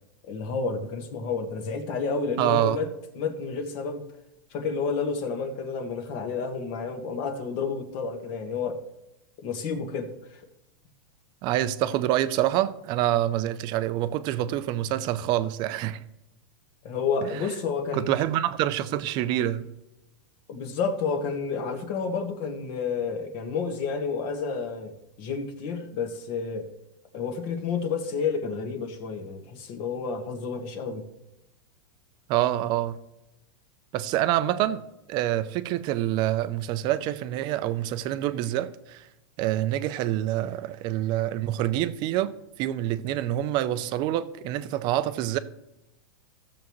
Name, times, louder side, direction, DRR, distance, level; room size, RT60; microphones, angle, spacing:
voice 1, 0.3-2.9 3.1-4.0 4.5-8.8 9.4-10.4 16.8-18.2 20.5-24.9 25.2-26.7 27.1-31.0, left 5 dB, 40° left, 1.5 m, -30 dB
voice 2, 2.4-2.8 11.4-16.0 17.9-19.7 32.3-33.0 33.9-34.8 35.1-39.1 39.4-45.4, right 13 dB, 35° right, 0.6 m, -26 dB
15.5 x 7.0 x 3.1 m
supercardioid pair, 150°, 13 cm